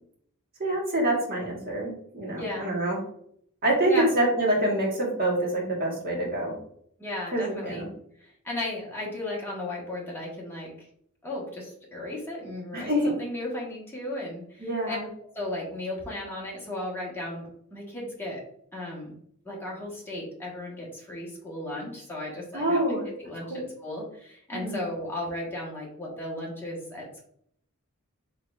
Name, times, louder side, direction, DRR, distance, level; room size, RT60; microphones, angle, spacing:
voice 1, 0.6-3.0 3.6-6.6 7.3-7.9 12.7-13.1 14.6-15.1 22.5-23.0 23.5-23.6 24.5-24.8, right 1 dB, 45° right, -3 dB, 1.5 m, -26 dB
voice 2, 2.3-2.7 3.9-4.1 7.0-7.9 8.2-10.9 11.2-15.0 15.3-18.4 18.7-19.1 19.4-22.9 23.2-27.2, left 1 dB, 10° left, -5 dB, 1.4 m, -35 dB
4.8 x 3.5 x 2.5 m, 0.67 s
head